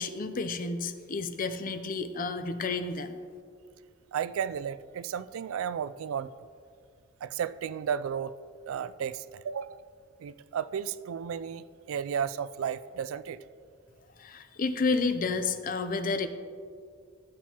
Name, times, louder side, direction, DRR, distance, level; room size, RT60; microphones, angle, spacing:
voice 1, 0.0-3.1 14.2-16.3, left 4 dB, 40° left, 9 dB, 0.5 m, -30 dB
voice 2, 4.1-6.3 7.2-8.3 8.7-9.8 10.2-13.4, right 8 dB, 85° right, 15 dB, 0.3 m, -33 dB
15.0 x 7.6 x 2.9 m, 2.2 s
head